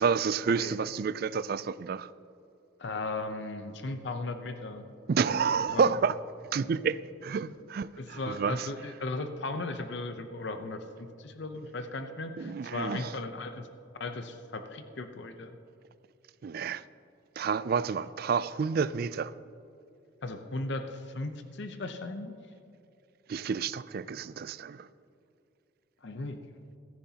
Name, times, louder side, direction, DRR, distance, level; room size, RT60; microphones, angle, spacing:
voice 1, 0.0-2.1 5.1-6.1 6.5-8.7 12.4-13.1 16.4-16.8 17.4-19.3 23.3-24.9, right 6 dB, 50° right, 0.3 m, -29 dB
voice 2, 2.8-4.8 5.7-5.9 8.0-13.7 14.0-15.6 20.2-22.4 26.0-26.4, left 2 dB, 60° left, 0.7 m, -37 dB
15.5 x 14.0 x 2.8 m
head